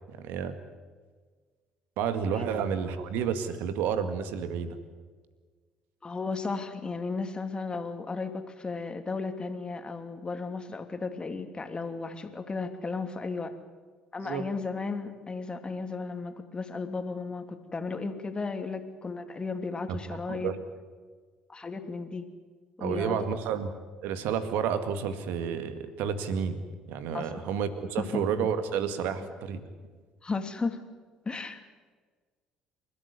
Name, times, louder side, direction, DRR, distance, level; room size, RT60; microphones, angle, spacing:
voice 1, 0.1-0.5 2.0-4.8 14.2-14.4 19.9-20.0 20.3-20.6 22.8-23.7 24.0-26.6 26.9-29.6, right 7 dB, 65° right, 10 dB, 2.0 m, -30 dB
voice 2, 6.0-13.5 14.1-20.5 21.5-22.3 22.8-23.3 27.1-27.4 28.0-28.2 30.2-30.8 31.2-31.6, left 4 dB, 25° left, 7 dB, 2.9 m, -34 dB
28.0 x 14.0 x 9.8 m, 1.5 s
figure-of-eight pair, 50°, 4 cm